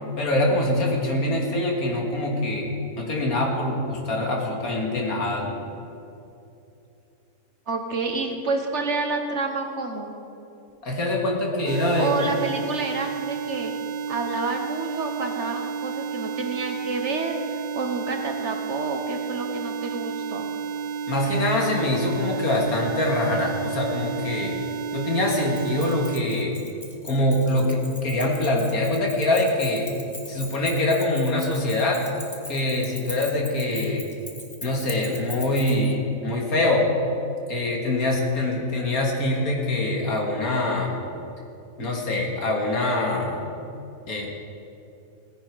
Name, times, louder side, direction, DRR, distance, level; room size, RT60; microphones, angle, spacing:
voice 1, 0.2-2.7 3.0-5.6 10.8-12.3 21.1-24.6 24.9-26.6 27.0-29.9 30.3-32.0 32.5-34.0 34.6-36.9 37.5-41.0 41.8-43.5 44.1-44.3, left 1 dB, 70° left, -1 dB, 2.3 m, -24 dB
voice 2, 7.7-10.2 12.0-13.7 14.1-20.5, right 3 dB, 50° right, 4 dB, 1.2 m, -29 dB
sound 1, 11.7-26.2, right 7 dB, 90° right, 1.3 m, -31 dB
Keys jangling, 25.3-35.9, left 1 dB, 15° left, 1.0 m, -40 dB
17.0 x 10.0 x 4.7 m, 2.8 s
omnidirectional pair, 1.6 m